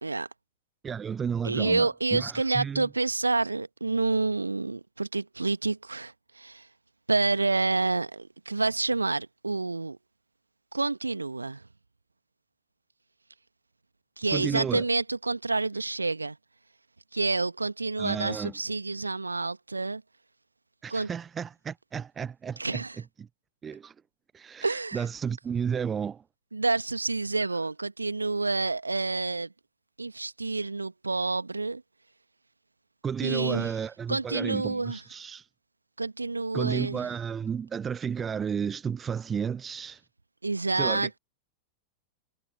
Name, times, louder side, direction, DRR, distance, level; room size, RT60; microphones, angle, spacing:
voice 1, 0.8-2.9 14.3-14.8 18.0-18.5 20.8-22.8 23.2-23.3 23.6-23.9 24.3-26.2 33.0-35.4 36.5-40.0 40.8-41.2, right 7 dB, 20° right, 0.7 m, -32 dB
voice 2, 1.4-6.7 7.1-10.0 10.7-11.6 14.2-16.4 17.1-20.0 20.9-21.1 22.6-23.0 24.6-25.0 26.5-29.5 30.0-31.8 33.2-33.7 34.1-35.0 36.0-37.0 40.4-41.2, right 3 dB, 80° right, 1.7 m, -28 dB
figure-of-eight pair, 90°, 0 cm